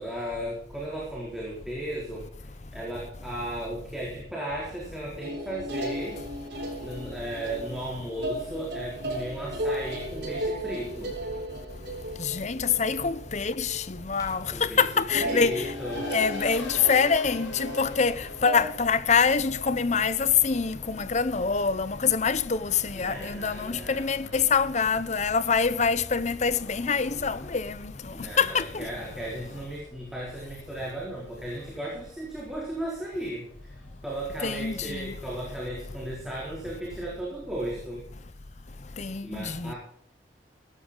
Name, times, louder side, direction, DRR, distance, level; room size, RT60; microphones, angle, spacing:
voice 1, 0.0-6.2 6.8-11.1 14.5-14.8 15.2-16.1 22.9-24.3 28.1-33.8 34.0-38.0 39.2-39.8, right 1 dB, ahead, 4.1 m, -35 dB
sound 1, 5.2-14.0 14.3-14.7 15.1-18.7, equal, 65° right, 7.3 m, -35 dB
voice 2, 12.2-15.6 16.1-27.9 28.4-28.9 34.4-35.1 39.0-39.7, left 5 dB, 40° left, 0.7 m, -25 dB
sound 2, 14.1-15.7, equal, 20° left, 4.4 m, -48 dB
Race car auto racing, 15.0-34.2, left 2 dB, 85° left, 4.5 m, -47 dB
17.0 x 13.0 x 3.9 m
head